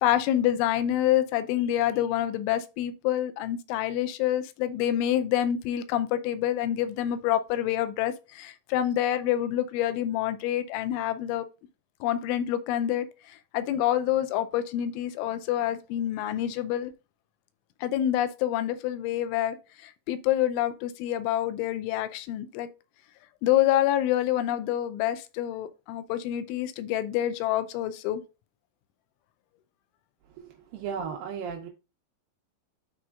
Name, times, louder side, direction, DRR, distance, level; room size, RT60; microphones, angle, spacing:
voice 1, 0.0-11.5 12.0-16.9 17.8-19.6 19.8-22.7 23.4-28.2, left 12 dB, 85° left, 3.0 m, -27 dB
voice 2, 30.3-31.7, right 6 dB, 80° right, 2.0 m, -36 dB
12.5 x 4.3 x 2.4 m
omnidirectional pair, 5.4 m